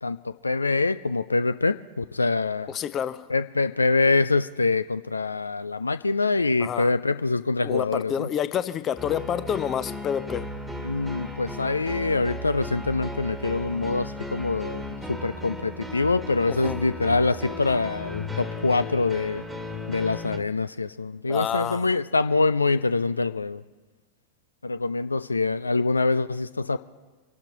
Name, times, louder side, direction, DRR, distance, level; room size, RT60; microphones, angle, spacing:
voice 1, 0.0-2.7 3.3-8.3 10.8-19.4 19.9-23.6 24.6-26.8, left 3 dB, 80° left, 14 dB, 0.3 m, -25 dB
voice 2, 2.7-3.3 6.6-6.9 7.6-10.4 16.5-16.8 21.3-21.9, left 9 dB, 30° left, 14 dB, 0.6 m, -28 dB
sound 1, 9.0-20.4, left 1 dB, 5° right, 1.6 m, -35 dB
25.5 x 11.5 x 2.9 m, 1.3 s
figure-of-eight pair, 90°, 0 cm